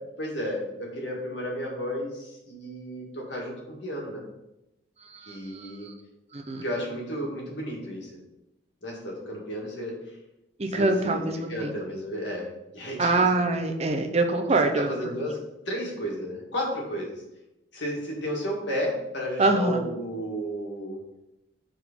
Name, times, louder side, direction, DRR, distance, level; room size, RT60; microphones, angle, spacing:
voice 1, 0.2-4.2 5.3-5.9 6.6-8.1 8.8-9.9 10.7-11.2 11.5-13.1 14.7-15.3 15.7-17.2 17.7-21.0, equal, 80° left, -2 dB, 1.8 m, -33 dB
voice 2, 5.0-5.9 6.3-6.6 10.6-11.7 13.0-14.9 19.4-19.8, right 2 dB, 35° right, 4 dB, 0.6 m, -25 dB
4.9 x 3.8 x 5.3 m, 0.92 s
head